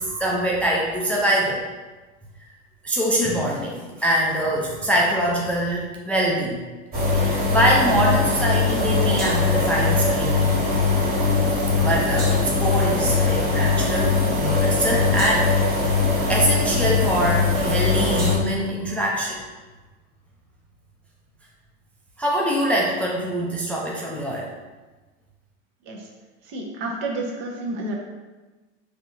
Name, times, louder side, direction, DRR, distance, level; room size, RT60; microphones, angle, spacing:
voice 1, 0.0-1.6 2.8-6.6 7.1-10.6 11.7-15.8 16.3-19.4 22.2-24.5, right 1 dB, 5° left, -4 dB, 0.4 m, -24 dB
sound 1, 6.9-18.3, left 4 dB, 25° right, 1.5 m, -21 dB
voice 2, 26.5-27.9, right 2 dB, 60° right, 0 dB, 1.0 m, -29 dB
4.7 x 2.9 x 2.5 m, 1.2 s
hypercardioid pair, 105°, 34 cm